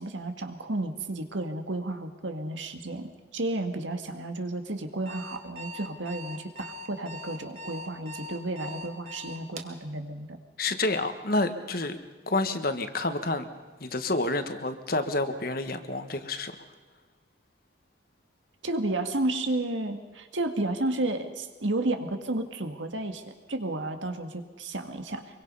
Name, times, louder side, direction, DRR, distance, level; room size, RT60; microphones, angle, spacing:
voice 1, 0.0-10.4 18.6-25.4, right 2 dB, 80° right, 6 dB, 2.0 m, -32 dB
Alarm, 4.9-9.8, equal, 35° right, 1.9 m, -41 dB
voice 2, 10.6-12.0 12.3-13.5 13.8-16.5, left 2 dB, 50° left, 9 dB, 1.5 m, -29 dB
25.5 x 23.0 x 5.6 m, 1.4 s
head